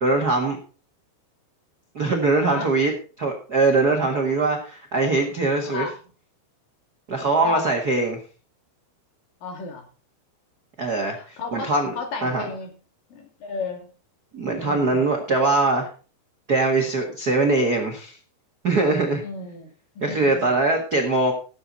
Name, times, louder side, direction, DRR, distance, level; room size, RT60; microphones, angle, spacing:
voice 1, 0.0-0.6 1.9-2.9 3.2-5.9 7.1-8.2 10.8-11.9 12.2-12.4 14.3-15.9 16.5-18.2 18.6-19.2 20.0-21.3, right 3 dB, 75° right, 2 dB, 0.9 m, -22 dB
voice 2, 9.4-9.9 10.9-12.8 13.1-13.9 14.4-15.1 19.2-20.6, left 4 dB, 60° left, 3 dB, 4.1 m, -34 dB
16.5 x 8.0 x 4.1 m, 0.37 s
omnidirectional pair, 4.7 m